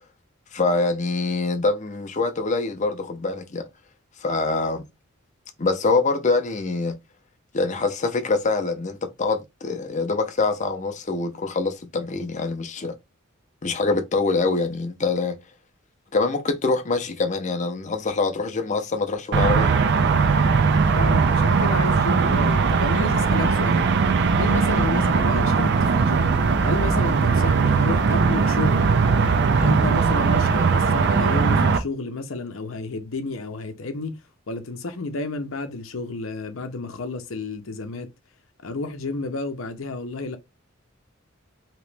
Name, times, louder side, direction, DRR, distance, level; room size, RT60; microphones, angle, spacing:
voice 1, 0.5-3.7 4.2-4.8 5.6-6.9 7.5-12.9 13.6-15.4 16.1-19.8, left 3 dB, 35° left, 0.6 m, -24 dB
sound 1, 19.3-31.8, right 5 dB, 55° right, 0.4 m, -19 dB
voice 2, 20.9-23.8 24.4-26.3 26.6-28.9 29.5-34.2 34.5-38.1 38.6-40.4, left 3 dB, 70° left, 0.7 m, -31 dB
2.9 x 2.9 x 3.3 m
head